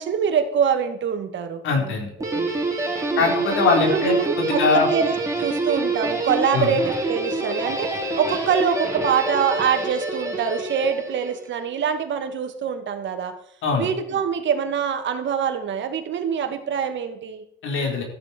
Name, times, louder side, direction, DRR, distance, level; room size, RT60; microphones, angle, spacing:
voice 1, 0.0-1.9 2.2-2.5 3.1-3.3 3.9-7.9 8.2-13.3 13.8-17.4, right 7 dB, 70° right, 6 dB, 2.2 m, -24 dB
voice 2, 1.6-2.1 3.2-4.9 6.5-6.7 13.6-13.9 17.6-18.0, left 4 dB, 85° left, 1 dB, 4.7 m, -21 dB
Guitar, 2.2-11.5, right 2 dB, 15° right, 3.7 m, -26 dB
13.5 x 10.5 x 4.7 m, 0.72 s
cardioid pair, 90°, 20 cm